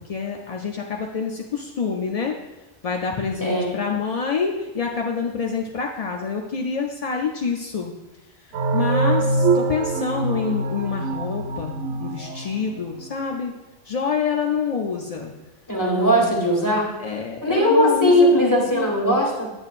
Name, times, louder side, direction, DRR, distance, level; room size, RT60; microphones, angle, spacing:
voice 1, 0.0-2.4 2.8-7.9 8.4-13.5 13.8-15.3 15.8-16.4 17.0-18.9, left 5 dB, 55° left, 0 dB, 0.4 m, -27 dB
voice 2, 3.4-3.7 15.7-16.9 17.4-19.5, equal, 15° left, -2 dB, 1.5 m, -19 dB
sound 1, 8.5-13.1, right 3 dB, 85° right, 0.9 m, -24 dB
8.7 x 8.5 x 2.4 m, 1.0 s
omnidirectional pair, 1.2 m